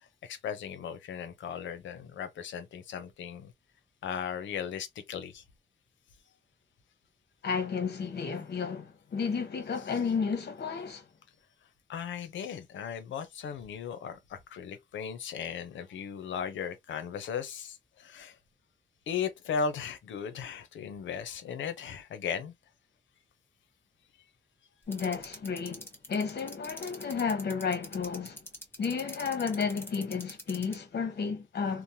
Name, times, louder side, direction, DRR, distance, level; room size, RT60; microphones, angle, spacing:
voice 1, 0.2-3.5 4.0-5.4 11.9-18.4 19.1-22.5, left 7 dB, 90° left, 0.6 m, -37 dB
voice 2, 7.4-11.0 24.9-28.4 28.8-31.8, left 5 dB, 60° left, 1.0 m, -32 dB
sound 1, 24.9-30.7, left 1 dB, 10° left, 1.0 m, -42 dB
3.0 x 2.1 x 2.6 m
cardioid pair, 80°, 19 cm